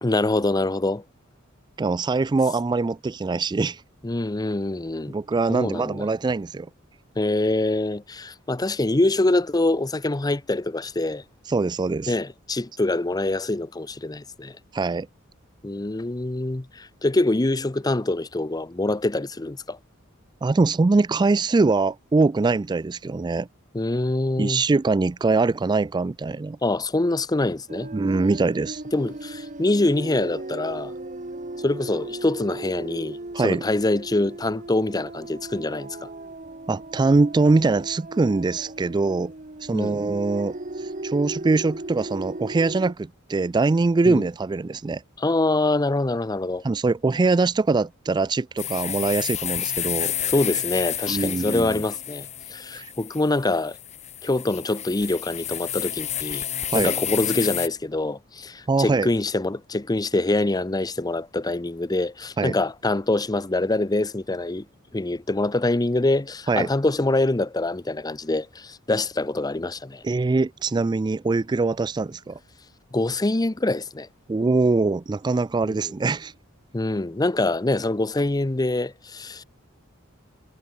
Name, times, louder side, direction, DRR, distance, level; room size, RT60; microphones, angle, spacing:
voice 1, 0.0-1.0 4.0-5.2 5.5-6.1 7.2-11.2 12.1-14.6 15.6-19.8 23.7-24.6 26.6-27.9 28.9-30.9 31.6-33.2 33.4-36.1 39.7-40.0 44.1-44.2 45.2-46.6 50.3-53.8 54.2-56.4 56.7-64.6 64.9-70.0 72.9-74.1 75.6-75.9 76.7-79.4, left 2 dB, 20° left, 0.7 m, -25 dB
voice 2, 1.8-3.8 5.1-6.7 11.5-12.2 14.7-15.1 20.4-23.5 24.4-26.6 27.9-28.8 33.3-33.6 36.7-39.3 39.6-45.0 46.6-50.1 51.1-51.8 52.7-52.9 56.7-56.9 58.7-59.1 62.4-62.5 66.5-66.7 70.0-72.4 74.3-76.3, right 3 dB, 20° right, 0.3 m, -23 dB
sound 1, 27.7-42.9, right 2 dB, 40° right, 1.7 m, -37 dB
sound 2, 48.6-57.7, left 10 dB, 35° left, 1.6 m, -30 dB
head